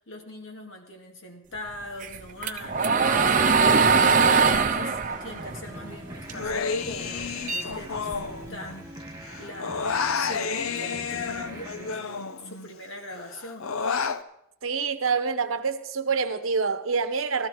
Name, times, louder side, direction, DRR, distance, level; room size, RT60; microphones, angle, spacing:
voice 1, 0.0-13.8, left 1 dB, 65° left, 2 dB, 2.2 m, -42 dB
sound 1, 2.0-6.5 6.9-8.5, right 5 dB, 40° right, 0.8 m, -22 dB
sound 2, 5.1-12.8, right 1 dB, 20° right, 2.5 m, -43 dB
Human voice, 6.3-9.0 9.2-12.7 13.1-14.2, left 5 dB, 90° left, 0.7 m, -30 dB
voice 2, 14.6-17.5, right 5 dB, 80° right, 8 dB, 1.0 m, -26 dB
14.0 x 14.0 x 4.8 m, 0.79 s
head